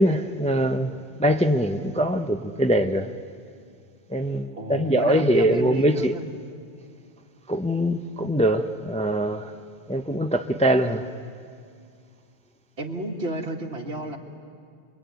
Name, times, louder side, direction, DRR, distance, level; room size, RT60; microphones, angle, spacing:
voice 1, 0.0-3.1 4.1-6.1 7.5-9.5 9.9-11.1, equal, 5° left, 0.7 m, -23 dB
voice 2, 4.5-6.3 12.8-14.2, right 1 dB, 65° right, 2.3 m, -31 dB
27.5 x 22.5 x 9.5 m
omnidirectional pair, 1.1 m